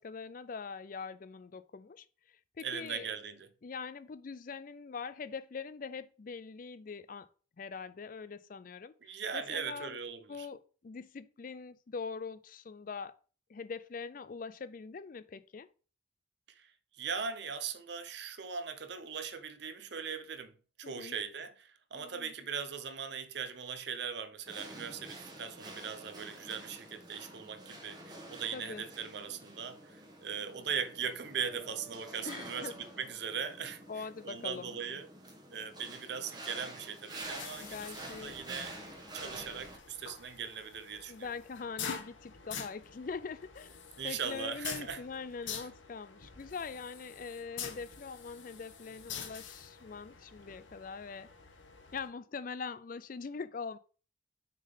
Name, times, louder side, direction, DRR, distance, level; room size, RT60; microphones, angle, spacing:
voice 1, 0.0-3.1 3.6-7.3 7.6-10.0 10.3-13.2 13.5-15.7 20.8-21.1 21.9-22.3 28.5-28.8 32.2-32.7 33.9-34.8 37.6-38.4 41.1-43.8 44.0-51.3 51.9-53.8, left 5 dB, 45° left, 0.4 m, -43 dB
voice 2, 2.6-3.5 9.0-10.5 16.5-16.7 17.0-35.1 35.5-38.8 39.1-41.3 44.0-45.0, right 6 dB, 55° right, 0.7 m, -40 dB
sound 1, 24.4-39.8, right 1 dB, 20° right, 1.1 m, -48 dB
sound 2, 31.2-33.8 36.4-36.5 38.1-38.7, right 3 dB, ahead, 1.2 m, -57 dB
sound 3, 37.2-52.1, left 7 dB, 75° left, 1.1 m, -46 dB
6.4 x 3.8 x 5.4 m
head